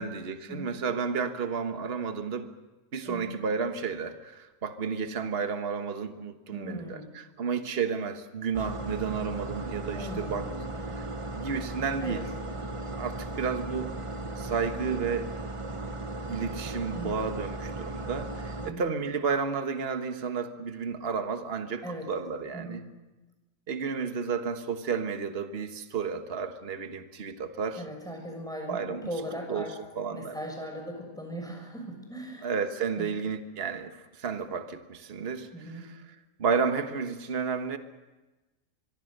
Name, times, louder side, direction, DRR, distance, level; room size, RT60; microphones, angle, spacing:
voice 1, 0.0-2.5 2.9-10.5 11.3-12.2 12.9-13.9 14.4-15.3 16.3-22.8 23.7-27.8 28.7-29.1 29.5-29.6 30.0-30.3 32.4-35.9 36.4-37.8, right 5 dB, 45° right, 8 dB, 1.4 m, -32 dB
voice 2, 6.5-7.1 9.9-10.6 12.0-12.2 16.9-17.2 18.6-18.9 21.8-22.1 22.5-22.8 27.8-29.7 30.1-32.5 33.0-33.2 35.5-35.8, equal, ahead, 2 dB, 6.5 m, -39 dB
sound 1, 8.5-18.7, right 2 dB, 30° right, 0.7 m, -36 dB
25.0 x 23.0 x 6.6 m, 1.1 s
omnidirectional pair, 1.5 m